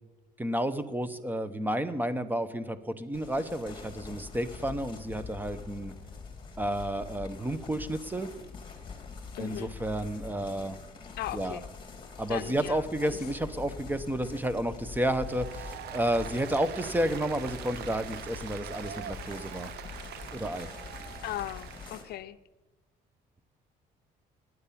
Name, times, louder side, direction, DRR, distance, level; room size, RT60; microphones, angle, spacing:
voice 1, 0.4-5.9 6.6-8.3 9.4-10.8 11.3-11.6 12.2-19.7 20.3-20.7, right 1 dB, 10° right, 12 dB, 0.9 m, -31 dB
sound 1, 3.1-22.0, left 5 dB, 30° left, 2.5 m, -44 dB
voice 2, 9.3-9.7 11.2-11.7 12.3-13.2 21.2-22.4, left 14 dB, 70° left, 13 dB, 0.5 m, -38 dB
Applause, 15.1-22.1, right 10 dB, 70° right, 0.8 m, -43 dB
13.0 x 9.6 x 8.5 m, 1.3 s
cardioid pair, 110°, 17 cm